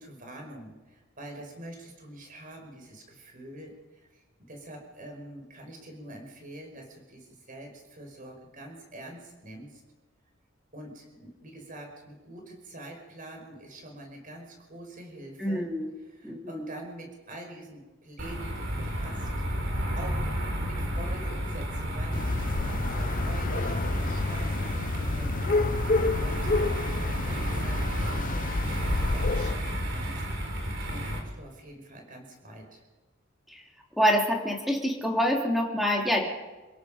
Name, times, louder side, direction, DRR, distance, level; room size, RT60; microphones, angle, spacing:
voice 1, 0.0-9.8 10.7-15.7 16.0-19.3 19.6-20.2 20.6-25.4 26.2-26.5 26.9-32.8, right 1 dB, 40° right, 2 dB, 5.5 m, -45 dB
voice 2, 15.4-15.9 16.2-16.7 34.0-36.3, equal, ahead, -1 dB, 3.5 m, -26 dB
sound 1, 18.2-31.2, equal, 60° right, 4.6 m, -31 dB
sound 2, 22.1-29.5, left 3 dB, 40° left, 0.6 m, -30 dB
29.0 x 17.0 x 5.3 m, 1.2 s
head